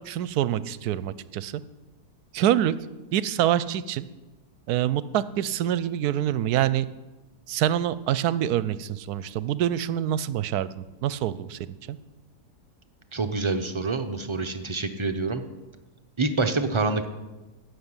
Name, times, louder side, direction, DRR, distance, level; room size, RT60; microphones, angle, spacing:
voice 1, 0.0-1.6 2.3-2.7 3.1-4.1 4.7-6.9 7.5-11.6 11.9-12.0, right 11 dB, 70° right, 17 dB, 1.1 m, -26 dB
voice 2, 13.1-15.4 16.2-17.1, right 3 dB, 35° right, 7 dB, 0.4 m, -26 dB
16.0 x 6.7 x 9.7 m, 1.1 s
omnidirectional pair, 1.8 m